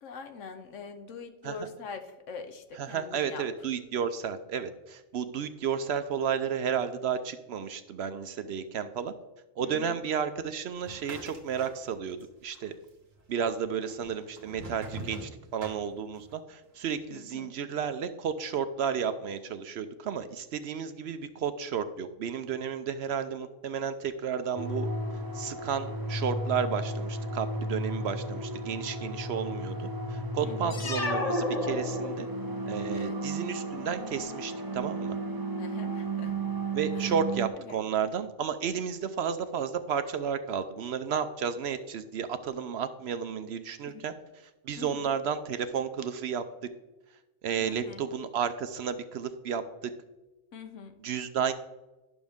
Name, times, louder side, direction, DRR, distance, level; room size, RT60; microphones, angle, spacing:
voice 1, 0.0-3.4 9.6-10.0 17.1-17.5 30.4-30.9 32.9-33.2 35.5-36.4 37.0-37.1 37.7-37.8 43.9-44.0 44.8-45.1 47.6-48.0 50.5-51.0, left 5 dB, 75° left, 7 dB, 1.2 m, -43 dB
voice 2, 2.8-9.1 9.6-12.7 13.3-24.9 25.3-32.3 32.7-35.2 36.7-44.1 44.6-46.4 47.4-49.9 51.0-51.5, right 7 dB, 65° right, 10 dB, 0.7 m, -32 dB
sound 1, 10.8-12.3 12.5-13.3 13.9-16.4, right 2 dB, 85° right, 1.7 m, -43 dB
sound 2, 24.6-37.5, right 2 dB, 25° right, 0.5 m, -34 dB
sound 3, 30.7-32.6, left 1 dB, 35° left, 0.8 m, -31 dB
11.5 x 6.2 x 3.5 m, 1.0 s
omnidirectional pair, 1.3 m